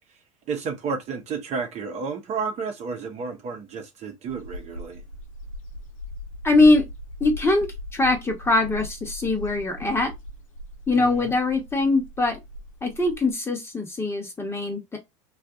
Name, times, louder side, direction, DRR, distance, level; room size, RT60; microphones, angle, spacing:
voice 1, 0.5-5.0 10.9-11.3, right 5 dB, 40° right, 0.9 m, -31 dB
sound 1, 4.3-13.3, left 1 dB, 85° left, 0.7 m, -39 dB
voice 2, 6.4-6.8 7.2-10.1 10.9-12.4 12.8-15.0, left 2 dB, 15° left, 1.1 m, -22 dB
2.6 x 2.4 x 3.6 m
hypercardioid pair, 85°, 16 cm